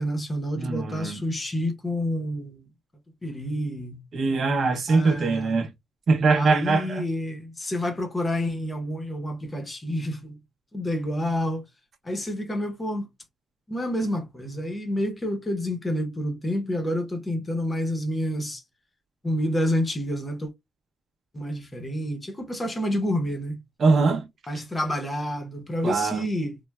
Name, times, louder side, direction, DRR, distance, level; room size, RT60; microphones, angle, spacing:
voice 1, 0.0-2.7 3.2-4.0 4.9-5.6 6.3-10.4 10.7-11.6 12.0-13.1 13.7-18.6 19.2-20.5 21.3-23.6 24.5-26.6, equal, 20° left, 0.8 m, -28 dB
voice 2, 0.5-1.2 4.1-5.7 6.1-7.0 23.8-24.3 25.8-26.3, right 4 dB, 50° right, 0.8 m, -22 dB
3.2 x 2.1 x 2.2 m
cardioid pair, 125°, 0 cm